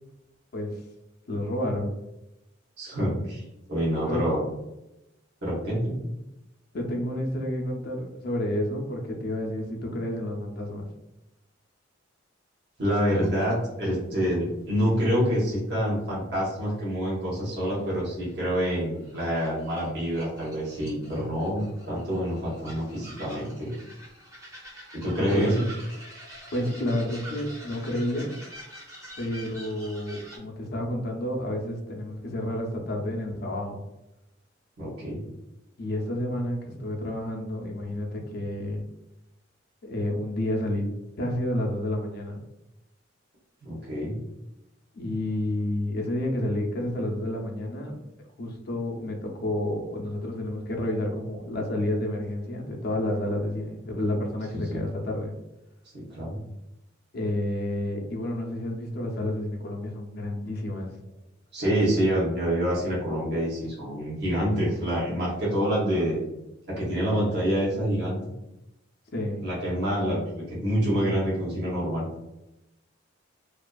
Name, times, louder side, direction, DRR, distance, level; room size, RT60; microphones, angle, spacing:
voice 1, 1.3-1.9 4.0-4.2 6.7-10.9 25.3-25.5 26.5-28.3 29.2-33.8 35.8-38.8 39.8-40.9 41.2-42.4 44.9-48.0 48.4-55.3 57.1-60.9 69.1-69.4, left 1 dB, 50° left, 1 dB, 0.4 m, -30 dB
voice 2, 2.8-3.4 3.7-4.4 5.4-6.1 12.8-23.7 24.9-25.6 34.8-35.2 43.6-44.2 54.5-54.8 55.9-56.4 61.5-66.2 66.7-68.2 69.4-72.1, equal, 55° right, -6 dB, 0.8 m, -27 dB
sound 1, 13.2-13.6 13.9-14.0 15.7-15.8 16.3-16.4 17.5-18.3 18.6-30.4, right 1 dB, 15° right, 0.6 m, -46 dB
2.5 x 2.3 x 2.2 m, 0.92 s
head